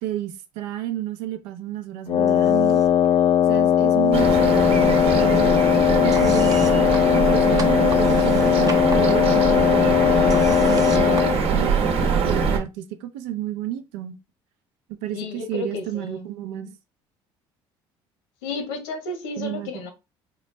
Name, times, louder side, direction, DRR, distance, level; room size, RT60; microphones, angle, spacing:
voice 1, 0.0-2.8 3.5-5.6 6.0-10.0 10.5-11.8 12.2-14.2 14.9-16.8 19.4-19.9, right 12 dB, 85° right, 0.6 m, -31 dB
Wind instrument woodwind instrument, 2.1-11.4, left 10 dB, 45° left, 0.4 m, -19 dB
sound 1, 2.3-3.1 3.3-4.4 4.6-12.2, right 5 dB, 30° right, 0.6 m, -39 dB
sound 2, 4.1-12.6, right 5 dB, 55° right, 0.9 m, -23 dB
voice 2, 15.1-16.2 18.4-19.9, left 3 dB, 90° left, 1.0 m, -32 dB
3.8 x 2.2 x 3.1 m
supercardioid pair, 80°, 12 cm